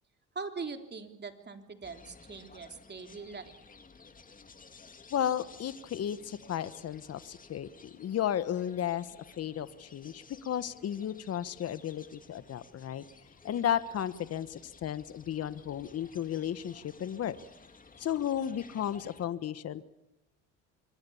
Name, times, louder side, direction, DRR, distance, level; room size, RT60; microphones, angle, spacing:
voice 1, 0.4-3.5, right 4 dB, 35° right, 5 dB, 3.5 m, -42 dB
sound 1, 1.8-19.3, left 4 dB, 25° left, 2.4 m, -55 dB
voice 2, 5.1-9.1 9.4-13.0 13.4-17.4 18.0-19.8, left 10 dB, 50° left, 14 dB, 1.3 m, -34 dB
26.0 x 22.5 x 7.2 m, 0.92 s
supercardioid pair, 80°, 32 cm